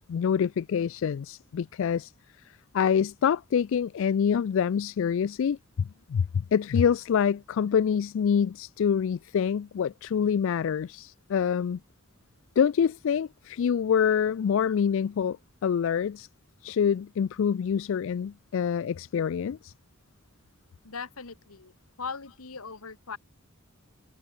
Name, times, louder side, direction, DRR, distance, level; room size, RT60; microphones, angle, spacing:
voice 1, 0.1-2.1 2.7-11.8 12.6-15.4 15.6-16.3 16.6-19.7, left 7 dB, 60° left, 0.3 m, -26 dB
voice 2, 20.8-21.7 22.0-23.2, left 5 dB, 80° left, 1.7 m, -39 dB
head